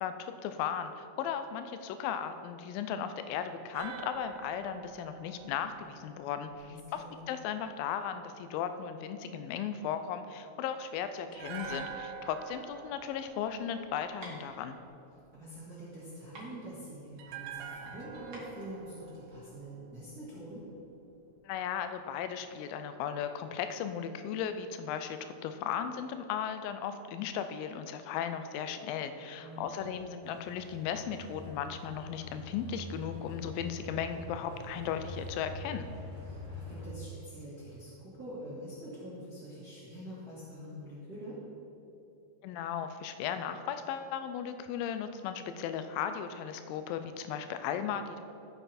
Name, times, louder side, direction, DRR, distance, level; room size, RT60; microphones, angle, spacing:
voice 1, 0.0-14.8 21.4-35.9 42.4-48.2, left 8 dB, 80° left, 9 dB, 2.1 m, -36 dB
sound 1, 3.7-6.9 11.3-14.5 17.2-20.4 20.7-20.8, right 6 dB, 85° right, 2.9 m, -46 dB
voice 2, 6.6-7.2 15.3-20.7 29.4-29.9 36.3-41.4, equal, 35° right, -10 dB, 1.5 m, -45 dB
sound 2, 13.0-19.6, right 1 dB, 60° right, 1.0 m, -52 dB
sound 3, 30.2-36.9, left 1 dB, 35° left, 1.8 m, -45 dB
15.0 x 5.7 x 4.2 m, 2.9 s
omnidirectional pair, 4.6 m